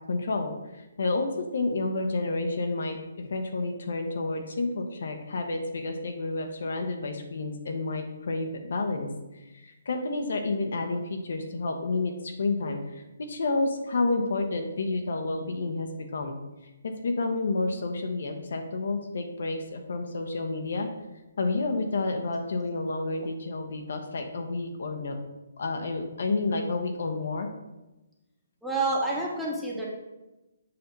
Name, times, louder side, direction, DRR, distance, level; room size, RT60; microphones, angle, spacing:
voice 1, 0.1-16.4 16.8-20.9 21.4-25.2 25.6-27.5, left 3 dB, 65° left, 4 dB, 0.8 m, -30 dB
voice 2, 28.6-29.9, right 2 dB, ahead, -5 dB, 1.0 m, -29 dB
6.8 x 2.8 x 5.2 m, 1.0 s
hypercardioid pair, 155°, 0 cm